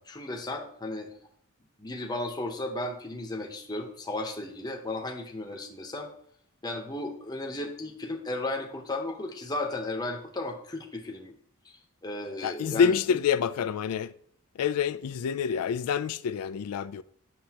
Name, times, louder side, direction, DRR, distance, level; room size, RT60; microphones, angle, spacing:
voice 1, 0.1-1.1 1.8-6.1 6.6-11.3 12.0-13.2, left 2 dB, 20° left, 0.8 m, -35 dB
voice 2, 12.4-14.1 14.6-17.0, left 7 dB, 90° left, 0.3 m, -27 dB
7.8 x 6.5 x 2.9 m
head